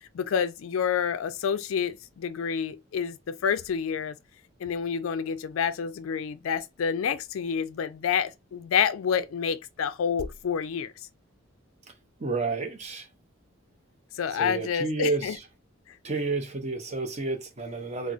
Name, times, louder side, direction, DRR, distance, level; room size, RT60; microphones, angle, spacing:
voice 1, 0.1-4.2 4.6-10.9 14.1-15.4, left 7 dB, 80° left, 0.4 m, -28 dB
voice 2, 12.2-13.1 14.4-15.4 16.0-18.1, right 3 dB, 35° right, 0.7 m, -30 dB
4.2 x 2.0 x 2.4 m
head